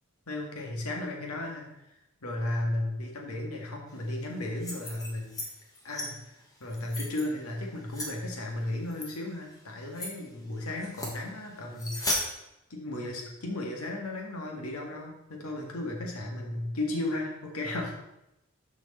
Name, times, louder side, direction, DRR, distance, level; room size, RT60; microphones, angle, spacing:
voice 1, 0.3-1.9 2.2-5.4 5.8-12.2 12.7-18.0, left 1 dB, 85° left, 0 dB, 1.9 m, -35 dB
sound 1, 4.5-5.5 5.7-6.1 6.6-7.2 7.9-8.1 8.9-9.1 9.5-9.6 9.9-10.1 10.8-11.2 11.8-12.2, left 1 dB, 15° left, 1.5 m, -34 dB
13.0 x 5.1 x 4.2 m, 0.88 s
head